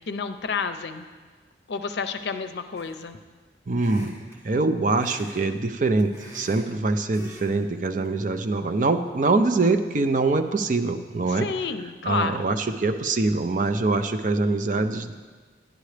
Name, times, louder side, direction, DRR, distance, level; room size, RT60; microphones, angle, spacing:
voice 1, 0.1-1.1 1.7-3.2 11.3-12.5, left 5 dB, 70° left, 9 dB, 0.5 m, -30 dB
sound 1, 2.7-3.2 3.7-4.4 5.0-5.4 5.7-6.7 7.1-7.5 7.8-8.1, equal, 15° right, 2.1 m, -45 dB
voice 2, 3.7-4.2 4.4-11.5 12.0-15.1, right 3 dB, 45° right, 7 dB, 0.5 m, -24 dB
11.5 x 10.5 x 3.3 m, 1.4 s
head